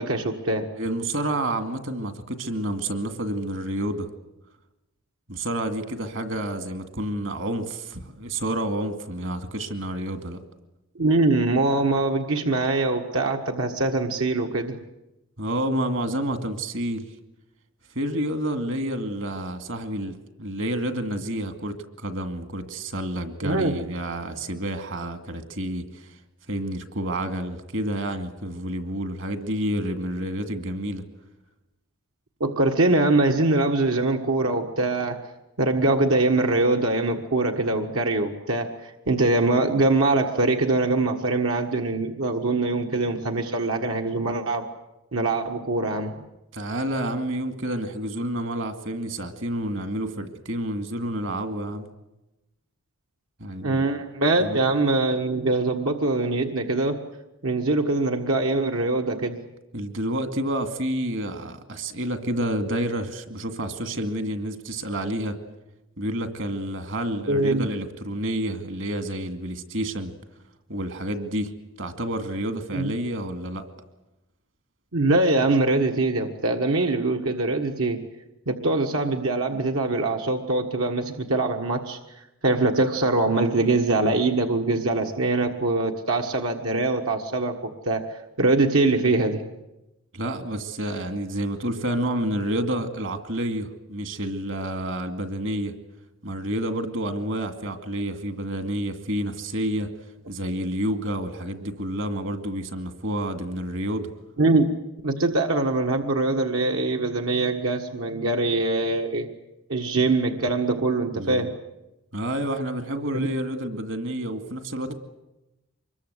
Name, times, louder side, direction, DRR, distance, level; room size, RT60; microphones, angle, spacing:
voice 1, 0.0-0.7 11.0-14.8 23.4-23.7 32.4-35.2 35.6-44.7 45.1-46.1 53.6-57.0 57.4-59.4 67.3-67.7 72.7-72.9 74.9-78.0 78.5-89.4 104.4-104.6 105.0-109.3 109.7-111.5 113.1-113.3, right 2 dB, 80° right, 1.7 m, -23 dB
voice 2, 0.8-4.1 5.3-10.4 15.4-17.1 17.9-26.2 26.5-31.0 46.5-51.9 53.4-53.8 54.4-54.6 59.7-65.4 66.0-70.1 70.7-71.5 71.8-73.7 90.1-95.7 96.2-99.9 100.3-104.1 111.1-111.5 112.1-114.9, right 1 dB, 60° right, 2.3 m, -29 dB
25.0 x 22.0 x 8.2 m
head